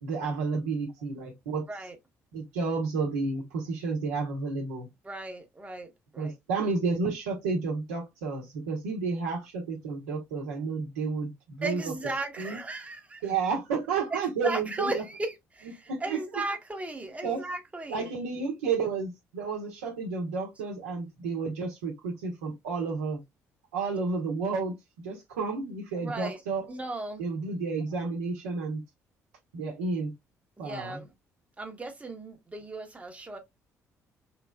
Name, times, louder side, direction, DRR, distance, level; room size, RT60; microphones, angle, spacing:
voice 1, 0.0-1.7 2.3-4.9 6.2-11.9 12.4-12.6 13.2-15.0 15.9-16.4 17.2-17.5 17.9-23.2 23.7-24.7 25.0-26.7 27.2-28.8 29.5-30.1 30.6-31.0, right 4 dB, 75° right, 1.0 m, -31 dB
voice 2, 5.0-6.3 11.6-13.2 14.4-18.1 26.0-26.4 26.7-27.2 30.6-31.1 31.6-33.4, right 2 dB, 15° right, 0.9 m, -36 dB
3.2 x 3.1 x 2.2 m
figure-of-eight pair, 45°, 8 cm